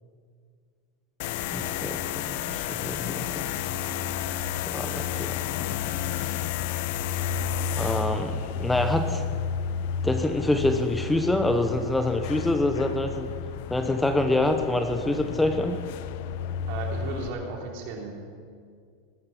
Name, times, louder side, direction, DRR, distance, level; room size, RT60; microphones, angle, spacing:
sound 1, 1.2-17.3, left 8 dB, 60° left, 0.8 m, -31 dB
voice 1, 1.5-3.4 4.7-5.6 7.8-9.2 10.0-13.3 13.7-15.8, left 2 dB, 5° left, 7 dB, 0.8 m, -26 dB
voice 2, 16.7-18.1, right 4 dB, 55° right, 1 dB, 3.6 m, -34 dB
19.5 x 9.5 x 7.5 m, 2.1 s
supercardioid pair, 145°, 0 cm